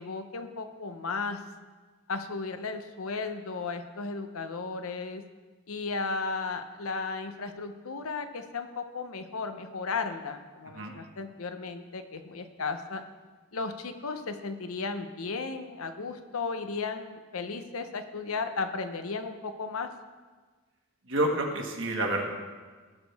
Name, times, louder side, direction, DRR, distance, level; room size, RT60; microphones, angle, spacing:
voice 1, 0.0-1.4 2.1-5.2 5.7-13.0 13.5-19.9, left 4 dB, 80° left, 8 dB, 0.8 m, -35 dB
voice 2, 21.1-22.2, right 1 dB, 60° right, 1 dB, 1.5 m, -28 dB
17.0 x 6.3 x 3.5 m, 1.4 s
head